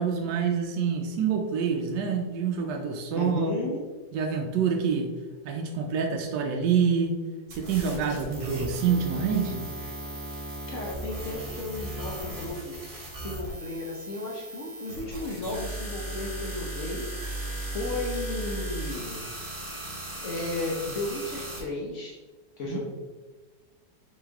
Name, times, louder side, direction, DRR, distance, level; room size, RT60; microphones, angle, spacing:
voice 1, 0.0-3.5 4.1-5.1 5.4-7.1 7.5-9.6 22.6-22.8, right 6 dB, 75° right, 2 dB, 1.1 m, -26 dB
voice 2, 3.1-3.8 10.7-12.8 13.2-17.0 17.6-19.2 20.2-22.2 22.6-22.9, left 2 dB, 55° left, -3 dB, 0.9 m, -34 dB
sound 1, 7.5-21.6, right 1 dB, 40° right, 1.6 m, -37 dB
4.3 x 3.2 x 3.5 m, 1.3 s
omnidirectional pair, 1.9 m